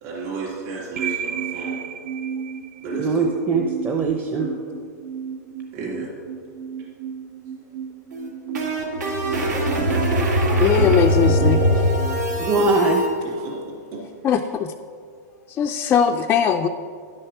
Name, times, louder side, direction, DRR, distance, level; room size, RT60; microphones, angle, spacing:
voice 1, 0.0-1.8 2.8-3.4 4.3-4.4 5.7-6.1 12.4-12.7 13.2-14.0, right 3 dB, 45° right, -4 dB, 3.0 m, -33 dB
sound 1, 1.0-13.0, right 7 dB, 60° right, 0.6 m, -34 dB
voice 2, 3.0-4.5 12.4-13.0, right 3 dB, 20° right, 1 dB, 0.7 m, -21 dB
sound 2, 8.1-13.1, equal, 90° right, 2.4 m, -21 dB
voice 3, 10.6-11.9 14.2-14.7 15.5-16.7, left 7 dB, 20° left, 4 dB, 0.3 m, -20 dB
11.0 x 6.4 x 6.0 m, 2.2 s
hypercardioid pair, 140°, 9 cm